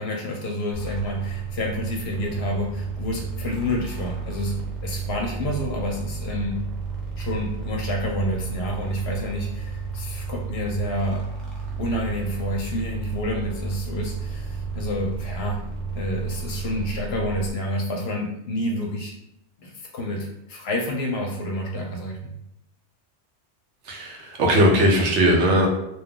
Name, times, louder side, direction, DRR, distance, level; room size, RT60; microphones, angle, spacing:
voice 1, 0.0-6.6 7.2-11.2 11.8-15.6 15.9-19.1 19.6-22.4, left 1 dB, 65° left, 1 dB, 0.8 m, -29 dB
sound 1, 0.7-17.5, right 5 dB, ahead, 0.5 m, -32 dB
voice 2, 23.9-25.7, equal, 70° right, 0 dB, 1.0 m, -19 dB
2.7 x 2.2 x 3.6 m, 0.82 s
omnidirectional pair, 1.3 m